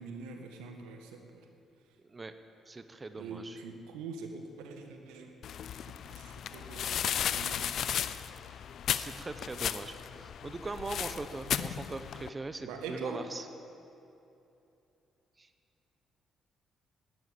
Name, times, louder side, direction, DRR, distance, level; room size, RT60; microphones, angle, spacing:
voice 1, 0.0-1.4 3.1-5.3 5.7-7.6 12.6-13.2, right 4 dB, 85° right, 4 dB, 1.5 m, -44 dB
voice 2, 2.7-3.6 8.9-13.5 15.4-15.5, right 3 dB, 30° right, 9 dB, 0.9 m, -41 dB
sound 1, 5.4-12.3, left 9 dB, 65° left, 0.5 m, -35 dB
12.5 x 11.5 x 8.8 m, 2.8 s
supercardioid pair, 55°, 0 cm